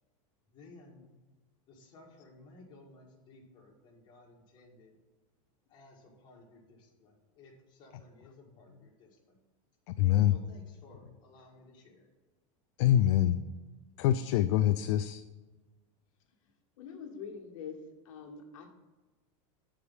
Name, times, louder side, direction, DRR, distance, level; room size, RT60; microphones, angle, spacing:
voice 1, 0.5-1.1 1.7-4.9 5.7-9.4 10.3-12.1, left 2 dB, 25° left, -2 dB, 1.7 m, -57 dB
voice 2, 9.9-10.3 12.8-13.4 14.0-15.2, left 12 dB, 60° left, 9 dB, 0.4 m, -25 dB
voice 3, 16.8-17.8 18.0-18.7, left 6 dB, 80° left, 1 dB, 1.3 m, -44 dB
8.0 x 4.9 x 5.4 m, 1.2 s
supercardioid pair, 155°, 17 cm